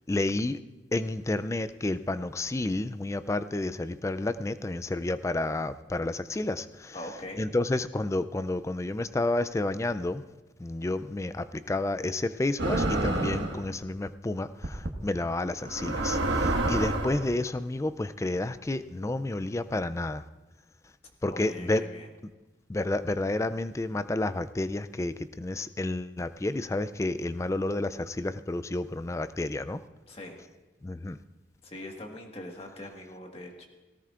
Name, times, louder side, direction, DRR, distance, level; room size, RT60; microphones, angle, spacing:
voice 1, 0.1-0.6 0.9-7.0 7.4-10.2 10.6-20.2 21.2-21.8 22.7-29.8 30.8-31.2, left 2 dB, 15° left, 13 dB, 0.3 m, -30 dB
voice 2, 6.9-7.4 21.3-22.1 30.1-30.4 31.6-33.7, left 1 dB, 30° left, 2 dB, 1.6 m, -42 dB
sound 1, 12.6-13.6 14.6-14.9 15.7-17.2, right 2 dB, 80° right, 1.5 m, -28 dB
18.0 x 18.0 x 2.5 m, 1.1 s
head